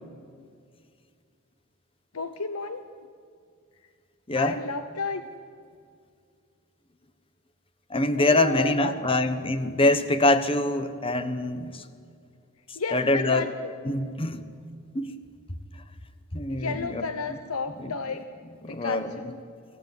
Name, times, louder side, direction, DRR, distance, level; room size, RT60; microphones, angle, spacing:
voice 1, 2.1-2.8 4.3-5.2 8.2-9.3 12.7-13.8 16.5-18.3 18.7-19.4, left 4 dB, 85° left, 9 dB, 0.9 m, -33 dB
voice 2, 7.9-11.8 12.7-13.5 13.8-14.4 14.9-15.1 16.3-17.0 17.8-17.9 18.6-19.2, left 2 dB, 25° left, 11 dB, 1.2 m, -24 dB
24.5 x 15.5 x 9.9 m, 2.3 s
head